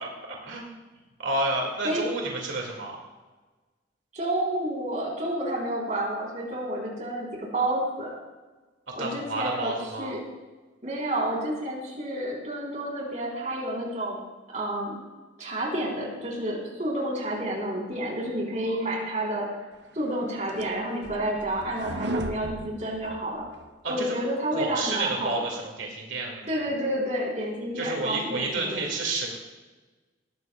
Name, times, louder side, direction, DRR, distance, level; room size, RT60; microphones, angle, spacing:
voice 1, 0.0-0.7 1.2-3.0 9.0-10.1 18.7-18.8 23.8-24.1 24.5-26.5 27.8-29.3, right 2 dB, 85° right, -1 dB, 2.3 m, -30 dB
voice 2, 4.1-7.3 7.5-8.1 9.0-9.7 10.0-10.2 10.8-14.2 14.5-15.0 15.4-19.5 19.9-23.4 23.9-25.3 26.5-28.8, right 1 dB, 40° right, -2 dB, 3.9 m, -30 dB
sound 1, 20.0-23.7, right 1 dB, 65° right, 0.8 m, -36 dB
19.0 x 14.5 x 2.4 m, 1.2 s
head